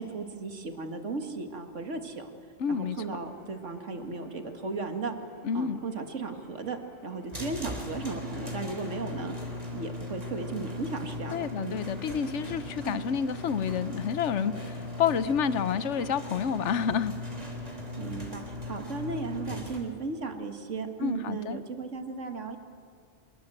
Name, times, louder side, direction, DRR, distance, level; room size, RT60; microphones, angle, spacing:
voice 1, 0.0-2.3 2.7-5.2 5.5-9.4 9.7-11.8 12.8-13.0 18.0-22.6, right 3 dB, 80° right, 6 dB, 2.3 m, -36 dB
voice 2, 2.6-3.0 5.4-5.8 11.3-17.1 21.0-21.6, left 7 dB, 75° left, 14 dB, 1.2 m, -29 dB
sound 1, 2.6-19.2, right 1 dB, 20° left, 2.6 m, -54 dB
sound 2, 7.3-19.8, left 2 dB, 30° right, 3.8 m, -39 dB
25.5 x 22.0 x 7.9 m, 2.3 s
omnidirectional pair, 1.2 m